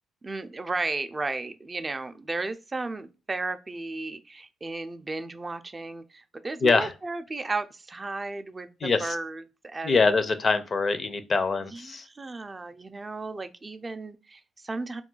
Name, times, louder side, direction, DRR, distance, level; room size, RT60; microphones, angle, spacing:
voice 1, 0.2-10.1 11.7-15.0, right 3 dB, 25° right, 0.3 m, -34 dB
voice 2, 6.6-6.9 8.8-9.2 9.8-12.1, left 4 dB, 40° left, 0.4 m, -24 dB
2.3 x 2.2 x 3.7 m
cardioid pair, 90°, 0 cm